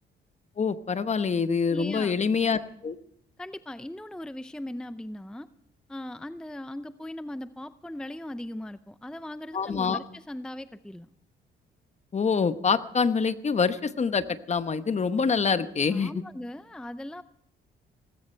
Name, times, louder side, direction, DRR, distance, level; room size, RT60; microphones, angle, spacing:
voice 1, 0.6-3.0 9.5-10.0 12.1-16.1, left 5 dB, 35° left, 11 dB, 1.1 m, -25 dB
voice 2, 1.7-2.1 3.4-5.5 5.9-11.1 15.9-17.2, left 1 dB, 5° left, 13 dB, 0.5 m, -39 dB
18.5 x 16.5 x 4.5 m, 0.76 s
cardioid pair, 90°, 20 cm